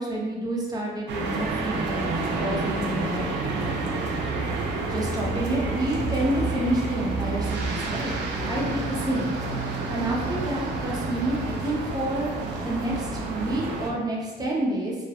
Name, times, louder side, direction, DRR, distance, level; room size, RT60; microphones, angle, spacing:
voice 1, 0.0-2.1 2.4-3.9 4.8-8.1 8.5-9.3 9.9-14.9, right 1 dB, 20° right, -3 dB, 0.5 m, -29 dB
sound 1, 1.1-13.9, right 3 dB, 80° right, 0.4 m, -29 dB
2.3 x 2.1 x 2.7 m, 1.2 s
cardioid pair, 130°, 18 cm